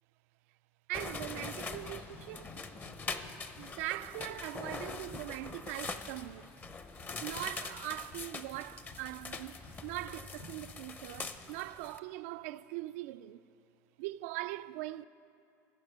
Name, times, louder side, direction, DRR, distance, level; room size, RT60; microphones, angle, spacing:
sound 1, 0.9-12.0, left 4 dB, 25° left, 0.6 m, -43 dB
voice 1, 0.9-2.5 3.6-6.5 7.2-13.4 14.0-15.0, right 17 dB, 75° right, 0.4 m, -41 dB
sound 2, 1.2-11.5, left 3 dB, 75° left, 2.6 m, -57 dB
15.5 x 7.4 x 6.3 m
supercardioid pair, 115°, 8 cm